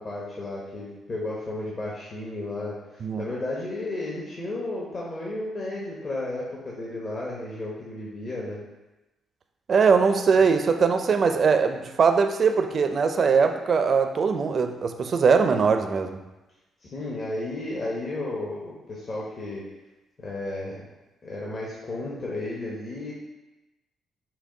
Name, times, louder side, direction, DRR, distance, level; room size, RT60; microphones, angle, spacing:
voice 1, 0.0-8.6 16.8-19.6 20.2-20.9 21.2-23.1, left 2 dB, 45° left, -5 dB, 0.9 m, -33 dB
voice 2, 9.7-16.2, right 5 dB, 50° right, 6 dB, 0.4 m, -21 dB
5.8 x 2.2 x 3.7 m, 1.0 s
cardioid pair, 90°, 0 cm